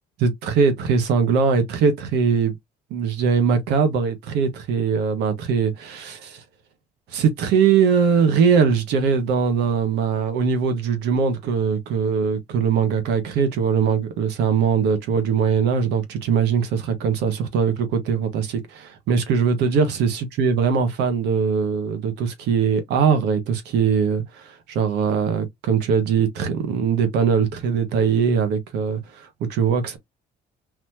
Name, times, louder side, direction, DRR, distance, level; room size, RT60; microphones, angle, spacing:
voice 1, 0.2-2.6 2.9-6.4 7.1-30.0, right 6 dB, 85° right, 1.3 m, -21 dB
4.1 x 3.0 x 2.7 m
cardioid pair, 110°, 17 cm